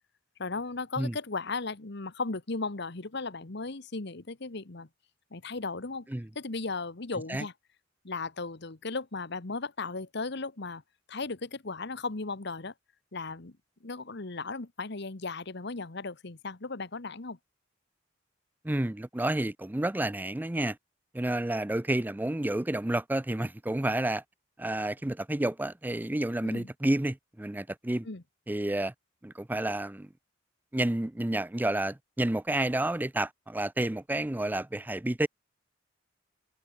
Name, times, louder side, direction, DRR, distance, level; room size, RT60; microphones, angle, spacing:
voice 1, 0.4-4.9 5.3-6.1 6.3-7.5 8.0-10.8 11.1-12.7 13.1-17.4 26.4-26.7 28.0-28.2, left 3 dB, 60° left, 1.3 m, -36 dB
voice 2, 18.6-20.8 21.1-24.2 24.6-28.1 28.5-28.9 29.2-30.1 30.7-35.3, right 1 dB, 10° right, 0.4 m, -30 dB
head